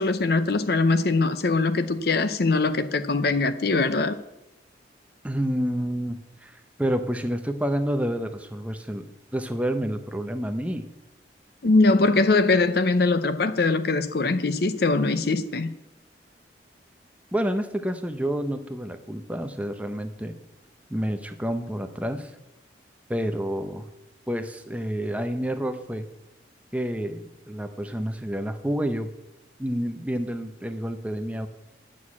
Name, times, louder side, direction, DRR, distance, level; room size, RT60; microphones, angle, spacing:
voice 1, 0.0-4.2 11.6-15.7, left 3 dB, 55° left, 0.6 m, -22 dB
voice 2, 5.2-9.1 9.3-10.9 17.3-20.4 20.9-22.4 23.1-23.9 24.3-26.1 26.7-29.1 29.6-31.5, equal, 5° right, 0.7 m, -29 dB
9.7 x 6.4 x 8.5 m
head